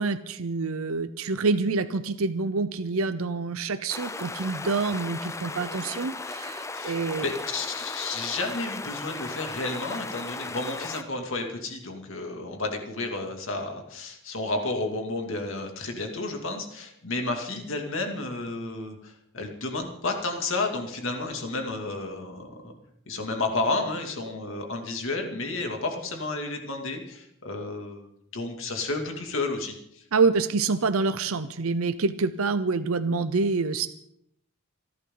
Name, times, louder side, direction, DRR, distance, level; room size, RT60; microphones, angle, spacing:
voice 1, 0.0-7.3 30.1-33.9, right 4 dB, 70° right, 11 dB, 0.7 m, -27 dB
sound 1, 3.9-11.0, left 3 dB, 15° left, 0.5 m, -36 dB
voice 2, 6.7-22.7 23.1-30.0, left 2 dB, 60° left, 3 dB, 2.6 m, -32 dB
27.0 x 11.5 x 4.0 m, 0.74 s
head